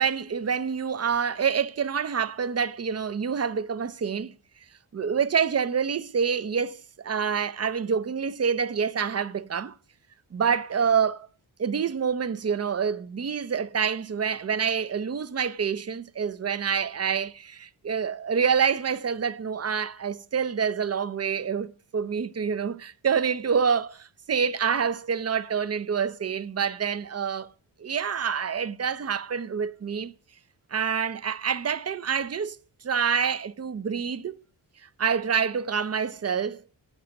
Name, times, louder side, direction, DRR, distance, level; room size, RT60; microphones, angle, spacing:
voice 1, 0.0-4.3 4.9-9.8 10.3-11.3 11.6-27.5 27.8-30.1 30.7-32.6 32.8-34.4 35.0-36.6, right 6 dB, 35° right, 0.5 m, -27 dB
8.8 x 8.1 x 6.3 m
cardioid pair, 90°, 46 cm